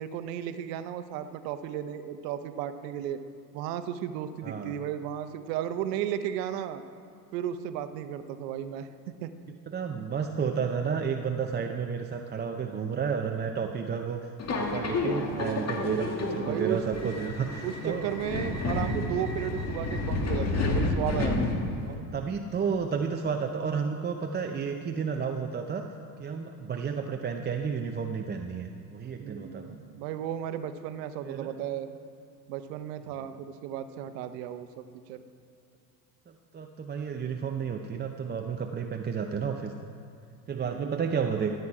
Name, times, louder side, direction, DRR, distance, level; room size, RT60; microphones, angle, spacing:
voice 1, 0.0-3.2 3.5-6.8 7.3-8.9 9.2-9.3 15.2-15.7 16.4-17.1 17.6-21.4 29.2-31.9 32.5-35.2 40.6-40.9, right 10 dB, 75° right, 11 dB, 0.9 m, -34 dB
voice 2, 4.4-4.7 9.7-14.3 14.6-18.1 21.8-25.9 26.2-29.8 31.2-31.5 36.3-39.7 40.5-41.5, right 6 dB, 20° right, 4 dB, 0.6 m, -31 dB
Subway metro underground, 14.4-21.9, left 2 dB, 30° left, 1.8 m, -30 dB
13.0 x 9.1 x 4.8 m, 2.6 s
hypercardioid pair, 80°, 50 cm